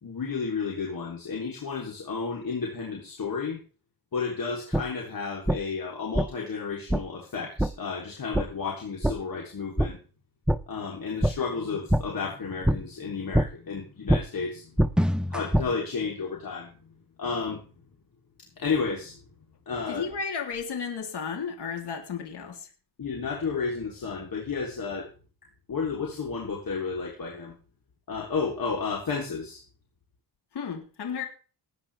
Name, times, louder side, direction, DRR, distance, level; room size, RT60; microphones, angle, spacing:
voice 1, 0.0-3.6 4.1-10.0 10.7-15.0 15.3-16.9 17.2-17.7 18.6-19.2 19.7-20.0 23.0-25.1 25.7-27.5 28.1-29.6, left 5 dB, 55° left, -1 dB, 3.6 m, -32 dB
sound 1, 4.7-4.8 5.5-5.6 6.1-6.3 6.9-7.0 7.6-7.7 8.3-8.4 9.0-9.1 9.8-9.9 10.5-10.6 11.2-11.3 11.9-12.0 12.6-12.8 13.3-13.5 14.1-14.2 14.8-15.7, equal, ahead, 0.6 m, -23 dB
voice 2, 19.9-22.7 30.5-31.2, left 6 dB, 75° left, 2 dB, 3.4 m, -33 dB
19.5 x 9.5 x 3.5 m, 0.36 s
cardioid pair, 90°, 41 cm